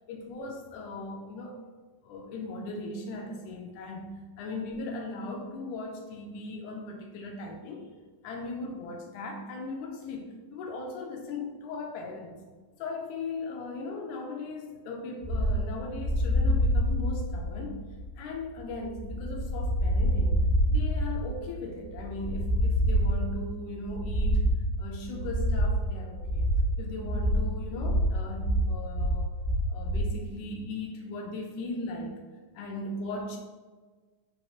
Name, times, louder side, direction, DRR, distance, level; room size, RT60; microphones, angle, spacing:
voice 1, 0.1-1.6 2.0-4.1 4.4-8.0 8.2-12.4 12.8-17.8 18.2-24.5 24.8-26.5 26.8-29.3 29.7-32.2 32.5-33.4, left 2 dB, 85° left, 1 dB, 1.7 m, -38 dB
sound 1, 15.2-30.1, equal, 60° right, 1.4 m, -27 dB
7.6 x 2.9 x 2.3 m, 1.4 s
omnidirectional pair, 3.9 m